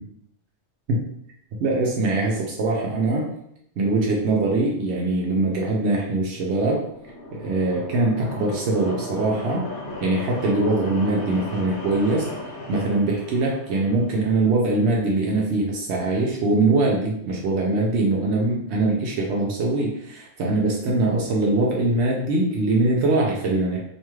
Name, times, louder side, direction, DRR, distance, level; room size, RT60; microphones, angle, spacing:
voice 1, 1.6-3.3 3.8-6.8 7.3-9.7 10.0-12.3 12.7-23.8, right 2 dB, 70° right, -2 dB, 0.8 m, -22 dB
sound 1, 6.5-14.4, left 1 dB, 85° left, 1.0 m, -36 dB
2.7 x 2.3 x 3.0 m, 0.74 s
omnidirectional pair, 1.2 m